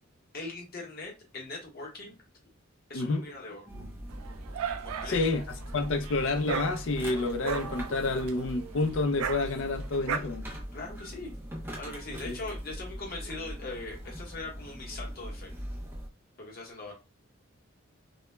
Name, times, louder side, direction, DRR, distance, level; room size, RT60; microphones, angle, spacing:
voice 1, 0.3-2.2 2.9-3.6 4.8-5.4 5.9-6.2 10.7-11.3 11.8-15.5 16.4-16.9, left 3 dB, 45° left, 0.8 m, -41 dB
sound 1, 3.7-16.1, equal, 10° right, 0.4 m, -41 dB
Dog, 4.1-10.2, right 7 dB, 90° right, 0.3 m, -37 dB
voice 2, 5.1-5.4 5.7-10.5 12.2-12.4, left 3 dB, 65° left, 0.4 m, -29 dB
2.2 x 2.0 x 3.0 m
head